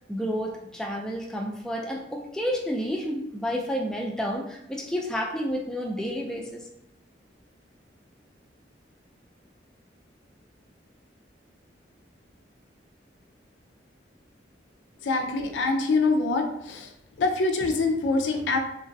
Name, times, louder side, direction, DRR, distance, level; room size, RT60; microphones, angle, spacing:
voice 1, 0.1-6.7, equal, 5° left, -1 dB, 0.3 m, -30 dB
voice 2, 15.0-16.9 17.2-18.6, left 3 dB, 90° left, 3 dB, 0.5 m, -24 dB
2.9 x 2.4 x 2.6 m, 0.78 s
head